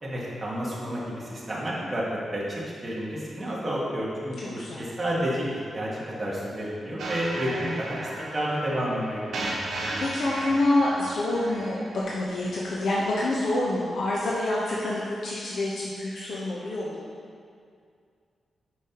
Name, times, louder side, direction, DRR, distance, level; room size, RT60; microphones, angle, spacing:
voice 1, 0.0-2.0 2.3-4.5 4.8-9.2, equal, 20° right, -7 dB, 1.6 m, -30 dB
voice 2, 4.4-4.9 10.0-17.1, left 2 dB, 70° left, -5 dB, 0.9 m, -27 dB
sound 1, 7.0-12.0, right 1 dB, 75° right, 1.2 m, -35 dB
9.4 x 5.5 x 3.0 m, 2.3 s
wide cardioid pair, 135°, 0 cm